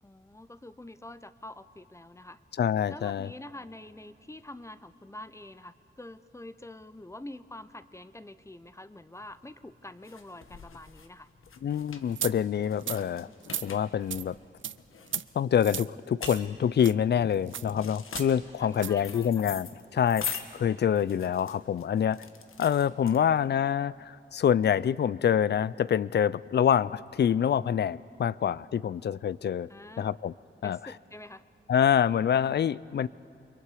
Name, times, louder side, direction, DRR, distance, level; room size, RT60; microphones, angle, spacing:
voice 1, 0.0-2.4 2.9-11.3 18.6-19.4 29.7-30.2 30.6-31.4, left 1 dB, 15° left, 14 dB, 0.6 m, -46 dB
voice 2, 2.6-3.3 11.6-13.3 13.6-14.4 15.4-22.3 22.6-29.7 30.0-30.3 30.6-30.8 31.7-33.1, left 8 dB, 55° left, 20 dB, 0.4 m, -26 dB
sound 1, 9.2-23.6, left 6 dB, 80° left, 1.3 m, -43 dB
sound 2, 12.2-12.3 12.8-13.0 13.4-13.7 14.1-14.2 14.6-14.8 15.1-15.2 15.6-15.9 16.2-16.5 16.8-16.9 17.5-17.7 18.2-18.3 18.7-18.9, right 9 dB, 70° right, 0.5 m, -34 dB
29.0 x 23.0 x 4.9 m, 2.8 s
wide cardioid pair, 85°, 21 cm